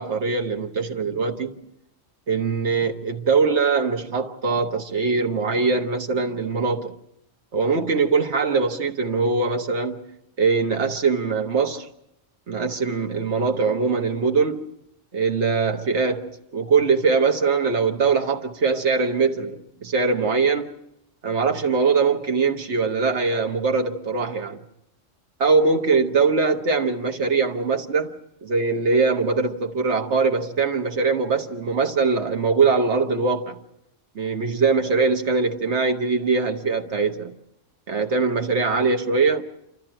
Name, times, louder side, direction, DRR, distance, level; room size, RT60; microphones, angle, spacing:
voice 1, 0.0-1.5 2.3-6.9 7.5-10.0 10.4-11.9 12.5-14.6 15.1-20.7 21.2-24.6 25.4-28.1 28.4-33.6 34.1-37.3 37.9-39.6, right 4 dB, 60° right, 1.5 m, -22 dB
28.0 x 13.5 x 8.9 m
omnidirectional pair, 1.3 m